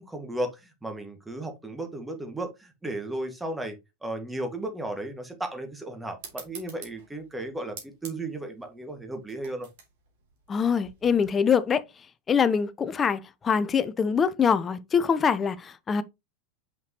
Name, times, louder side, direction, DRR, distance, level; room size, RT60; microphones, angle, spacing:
voice 1, 0.0-3.8 4.0-9.7, right 1 dB, 10° right, 1.8 m, -35 dB
sound 1, 6.2-11.3, right 5 dB, 65° right, 2.9 m, -47 dB
voice 2, 10.5-11.8 12.3-16.0, left 6 dB, 25° left, 0.6 m, -24 dB
6.0 x 5.7 x 2.9 m
figure-of-eight pair, 85°, 0 cm